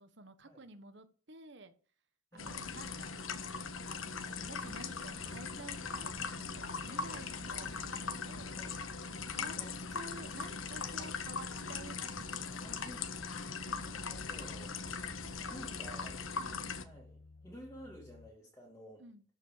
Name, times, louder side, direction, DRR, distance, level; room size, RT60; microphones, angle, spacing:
voice 1, 0.0-1.7 2.3-3.2 3.9-8.6 9.3-9.5 9.9-12.5 15.2-15.6 16.4-16.9 19.0-19.2, right 2 dB, 60° right, 1.4 m, -52 dB
voice 2, 2.3-2.7 5.2-5.4 6.8-7.1 8.5-8.8 9.5-9.8 11.0-11.5 12.4-15.2 15.5-16.2 16.7-19.0, equal, 15° left, 2.4 m, -53 dB
sound 1, 2.4-16.8, left 5 dB, 85° left, 1.3 m, -40 dB
sound 2, 5.3-18.3, left 3 dB, 55° left, 0.9 m, -57 dB
13.5 x 5.7 x 6.7 m
head